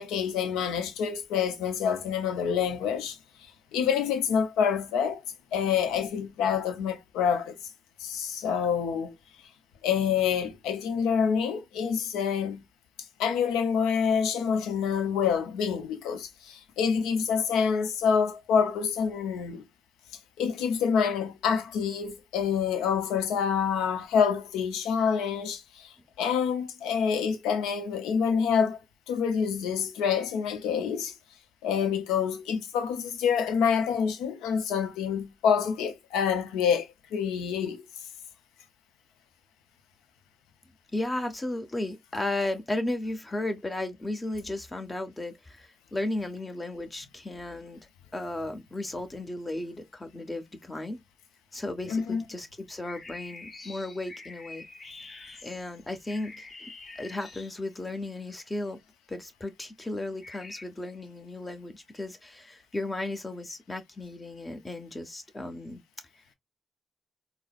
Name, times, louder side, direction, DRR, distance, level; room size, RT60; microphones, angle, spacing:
voice 1, 0.0-3.2 3.7-5.2 5.5-7.6 8.0-9.1 9.8-12.6 13.2-19.6 20.4-28.8 29.1-31.1 31.6-37.8 51.9-52.2, left 7 dB, 90° left, 0.5 m, -27 dB
voice 2, 40.9-47.8 48.1-51.0 51.5-54.7 55.4-56.7 56.9-58.8 59.1-65.8, left 2 dB, 25° left, 1.1 m, -35 dB
sound 1, 52.8-57.9 60.2-60.6, left 3 dB, 50° left, 1.0 m, -46 dB
3.8 x 2.0 x 2.3 m
supercardioid pair, 45°, 0 cm